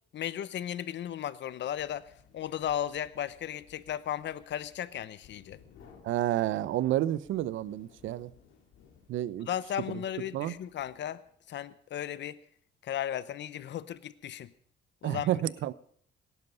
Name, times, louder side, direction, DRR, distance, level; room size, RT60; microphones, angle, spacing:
voice 1, 0.1-5.6 9.5-11.2 11.5-12.4 12.8-14.5 15.0-15.4, left 10 dB, 65° left, 0.8 m, -35 dB
sound 1, 1.6-11.6, left 6 dB, 90° left, 2.8 m, -61 dB
voice 2, 6.0-8.3 9.1-9.5 9.9-10.0 10.3-10.6 15.0-15.7, right 13 dB, 80° right, 0.6 m, -30 dB
18.5 x 11.0 x 5.5 m
cardioid pair, 90°, 20 cm